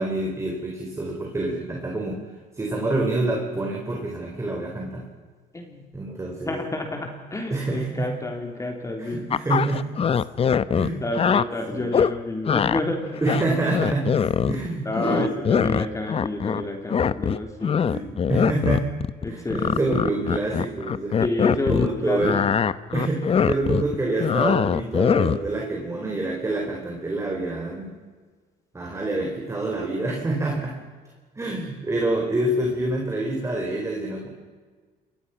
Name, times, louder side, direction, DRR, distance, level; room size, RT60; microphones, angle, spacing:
voice 1, 0.0-2.2 2.5-5.0 5.9-6.6 7.5-8.1 9.0-9.9 10.7-11.1 11.7-11.9 13.2-14.1 14.4-15.7 17.8-19.0 19.3-21.2 21.5-22.4 22.9-27.9 28.7-30.8 31.4-34.3, right 2 dB, 15° right, 0 dB, 4.4 m, -27 dB
voice 2, 5.5-5.8 6.4-9.2 11.0-13.2 14.8-18.0 19.2-19.8 21.2-22.3, left 2 dB, 20° left, 3 dB, 3.5 m, -29 dB
sound 1, 9.3-11.4 11.9-12.1 12.5-12.8 13.2-14.7 15.0-16.6 16.9-21.9 22.2-25.5, left 7 dB, 35° left, 0.8 m, -22 dB
27.5 x 22.5 x 5.9 m, 1.5 s
cardioid pair, 110°, 17 cm